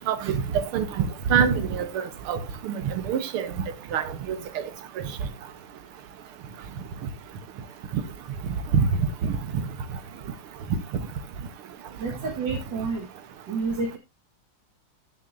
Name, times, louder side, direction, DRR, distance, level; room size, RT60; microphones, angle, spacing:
voice 1, 0.1-0.9 1.3-3.5 3.9-4.4 8.7-8.9 9.2-9.3, right 7 dB, 90° right, 1.9 m, -25 dB
voice 2, 12.0-13.1 13.5-14.0, right 4 dB, 60° right, 2.1 m, -29 dB
13.5 x 6.6 x 2.6 m
omnidirectional pair, 2.3 m